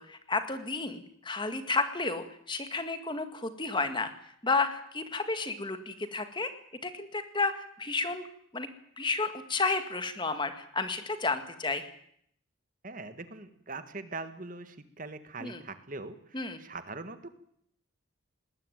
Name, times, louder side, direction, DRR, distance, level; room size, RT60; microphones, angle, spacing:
voice 1, 0.0-4.1 4.4-6.5 6.8-8.2 8.5-8.7 9.0-11.8 15.4-15.6 16.3-16.6, left 3 dB, 20° left, 9 dB, 1.9 m, -32 dB
voice 2, 12.8-17.4, right 3 dB, 40° right, 10 dB, 1.6 m, -42 dB
20.5 x 19.5 x 9.2 m, 0.68 s
head